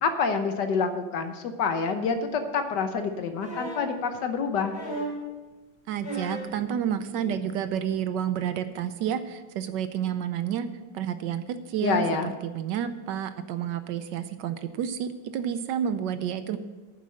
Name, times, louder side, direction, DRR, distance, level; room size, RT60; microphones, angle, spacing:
voice 1, 0.0-4.7 11.8-12.3, left 5 dB, 65° left, 7 dB, 1.4 m, -27 dB
sound 1, 3.4-3.9 4.7-5.3 6.0-6.5 7.8-7.9, right 1 dB, 15° left, 3.4 m, -34 dB
voice 2, 5.9-10.7 10.9-16.6, right 9 dB, 75° right, 11 dB, 1.2 m, -30 dB
9.6 x 7.3 x 7.6 m, 1.2 s
omnidirectional pair, 2.1 m